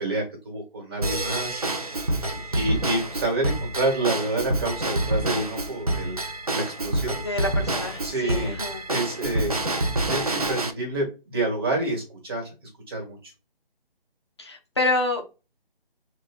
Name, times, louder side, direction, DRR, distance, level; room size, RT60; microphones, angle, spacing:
voice 1, 0.0-1.6 2.3-6.2 6.5-7.2 8.0-8.6 8.9-12.5 12.9-13.3, right 2 dB, 25° right, 0 dB, 1.2 m, -28 dB
Drum kit / Drum / Bell, 1.0-10.7, right 1 dB, 40° right, 0.4 m, -27 dB
voice 2, 7.2-8.8 14.4-15.3, left 2 dB, 30° left, 1 dB, 0.6 m, -28 dB
4.0 x 2.2 x 2.4 m, 0.30 s
figure-of-eight pair, 155°, 30 cm